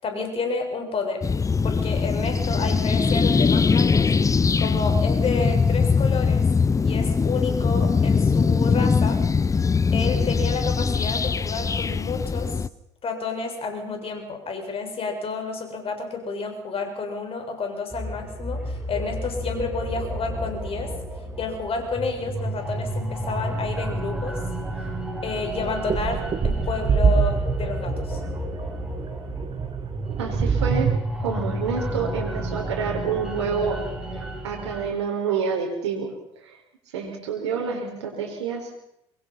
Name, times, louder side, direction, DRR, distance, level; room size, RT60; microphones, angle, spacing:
voice 1, 0.0-1.2 1.6-4.1 4.6-6.4 6.8-9.2 9.9-12.5 13.0-20.9 21.4-24.4 25.2-28.2, left 4 dB, 40° left, 4 dB, 6.9 m, -30 dB
sound 1, 1.2-12.7, left 5 dB, 20° left, 0.8 m, -21 dB
sound 2, 17.9-34.9, right 1 dB, 5° right, 7.8 m, -31 dB
sound 3, 24.7-24.9 25.4-31.0, right 6 dB, 35° right, 1.8 m, -25 dB
voice 2, 30.2-30.9 31.2-33.8 34.1-36.1 36.4-36.5 36.9-38.7, right 5 dB, 80° right, 0 dB, 4.8 m, -28 dB
24.5 x 20.5 x 5.8 m, 0.80 s
hypercardioid pair, 65°, 14 cm